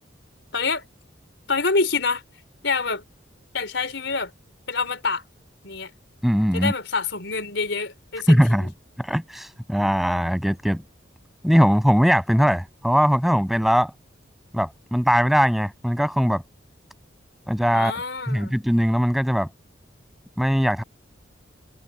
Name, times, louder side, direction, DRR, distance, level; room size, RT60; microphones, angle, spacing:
voice 1, 0.5-0.9 1.5-2.2 2.6-3.0 3.5-4.3 4.7-5.2 5.6-5.9 6.5-8.7 17.7-18.6, left 4 dB, 70° left, 4.3 m, -26 dB
voice 2, 6.2-6.7 8.3-8.7 9.0-10.8 11.4-13.9 14.5-16.4 17.5-17.9 18.3-19.5 20.4-20.8, equal, ahead, 6.8 m, -20 dB
open air
head